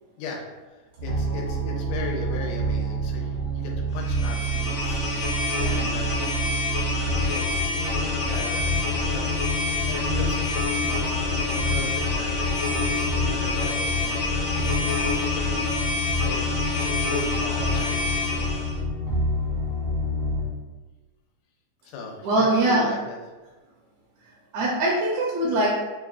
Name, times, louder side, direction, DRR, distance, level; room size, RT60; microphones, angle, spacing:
voice 1, 0.7-6.2 7.3-8.0 8.2-9.3 9.6-14.3 14.5-16.5 16.8-18.5 21.8-23.2, left 3 dB, 90° left, 0 dB, 2.0 m, -38 dB
sound 1, 1.0-20.5, equal, 55° right, 0.8 m, -28 dB
sound 2, 4.0-18.8, left 3 dB, 65° left, 1.2 m, -28 dB
voice 2, 22.2-22.9 24.5-25.7, right 1 dB, 80° right, -5 dB, 1.8 m, -22 dB
5.5 x 2.4 x 2.4 m, 1.2 s
omnidirectional pair, 3.3 m